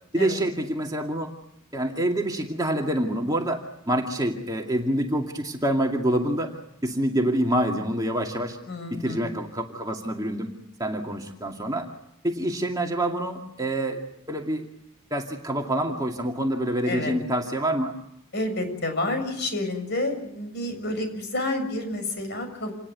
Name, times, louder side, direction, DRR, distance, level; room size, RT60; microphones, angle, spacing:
voice 1, 0.1-1.3 1.7-3.6 3.9-6.5 6.8-8.6 8.9-10.5 10.8-11.9 12.2-14.0 14.3-14.6 15.1-17.9, right 1 dB, 15° right, 1 dB, 2.3 m, -26 dB
voice 2, 8.7-9.3 16.8-17.1 18.3-22.7, left 2 dB, 50° left, 7 dB, 6.9 m, -29 dB
28.0 x 19.5 x 9.3 m, 0.77 s
head